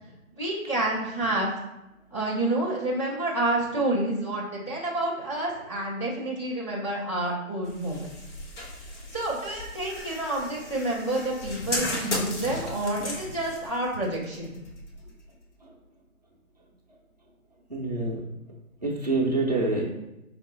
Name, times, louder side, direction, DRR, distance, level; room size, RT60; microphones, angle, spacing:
voice 1, 0.4-1.5 2.1-8.1 9.1-14.6, right 1 dB, 20° left, -7 dB, 0.5 m, -29 dB
sound 1, 7.6-15.5, left 2 dB, 55° left, 0.9 m, -36 dB
voice 2, 17.7-18.2 18.8-19.9, right 2 dB, 30° right, -3 dB, 0.5 m, -26 dB
4.5 x 2.1 x 3.7 m, 0.94 s
figure-of-eight pair, 160°, 43 cm